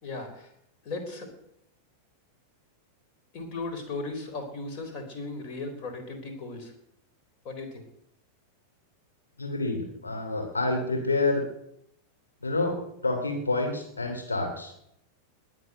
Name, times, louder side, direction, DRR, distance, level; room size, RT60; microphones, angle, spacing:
voice 1, 0.0-0.5 0.8-1.3 3.3-6.7 7.4-7.8, left 3 dB, 40° left, 6 dB, 4.0 m, -36 dB
voice 2, 9.4-11.4 12.4-14.7, left 2 dB, 75° left, 3 dB, 2.8 m, -28 dB
20.5 x 7.6 x 8.0 m, 0.76 s
figure-of-eight pair, 90°, 0 cm